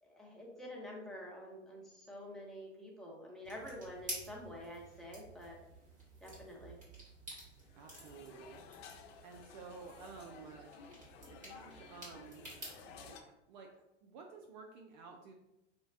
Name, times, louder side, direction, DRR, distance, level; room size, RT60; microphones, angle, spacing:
voice 1, 0.0-5.6 6.2-6.8, equal, ahead, -3 dB, 0.6 m, -48 dB
sound 1, 3.4-13.1, right 1 dB, 20° right, 1.5 m, -51 dB
sound 2, 7.6-13.2, left 6 dB, 55° left, 0.5 m, -55 dB
voice 2, 7.8-10.7 11.3-13.7 14.0-15.3, right 5 dB, 40° right, 2 dB, 0.4 m, -53 dB
5.0 x 2.1 x 2.4 m, 0.93 s
hypercardioid pair, 100°, 36 cm